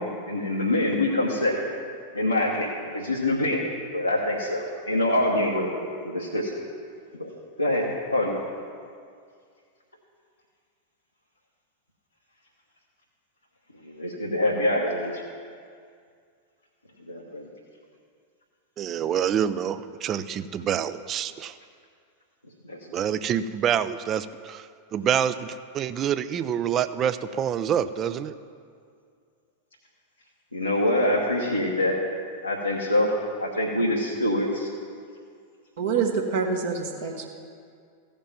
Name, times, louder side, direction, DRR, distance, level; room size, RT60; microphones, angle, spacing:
voice 1, 0.0-1.5 2.1-3.7 3.9-5.7 6.0-6.5 7.2-7.3 7.6-8.4 13.8-15.2 17.1-17.5 22.6-23.0 30.5-31.9 32.4-33.1 33.4-34.7, left 1 dB, 85° left, -4 dB, 1.1 m, -25 dB
voice 2, 18.8-21.5 22.9-28.3, right 9 dB, 30° right, 13 dB, 0.4 m, -27 dB
voice 3, 35.8-37.3, right 5 dB, 55° right, 0 dB, 1.1 m, -26 dB
15.0 x 5.2 x 7.3 m, 2.2 s
figure-of-eight pair, 90°, 0 cm